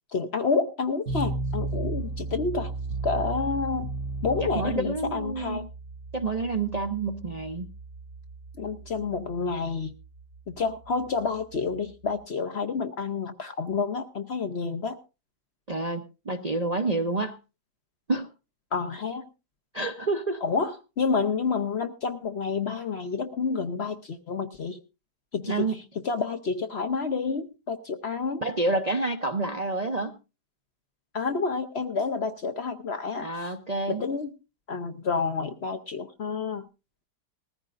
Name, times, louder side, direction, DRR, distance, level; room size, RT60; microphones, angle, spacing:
voice 1, 0.1-2.7 3.0-3.9 4.2-5.6 8.6-9.9 10.5-15.0 18.7-19.2 20.4-24.8 25.3-28.4 31.1-33.3 33.9-34.3 34.7-36.6, left 4 dB, 50° left, 7 dB, 0.9 m, -29 dB
sound 1, 1.1-12.2, right 3 dB, 55° right, 1.3 m, -35 dB
voice 2, 4.5-5.7 6.1-7.7 15.7-17.4 18.1-18.3 19.7-20.4 25.5-25.8 28.4-30.2 33.2-34.0, right 3 dB, 35° right, 5 dB, 0.6 m, -28 dB
20.0 x 14.5 x 2.5 m, 0.30 s
omnidirectional pair, 1.7 m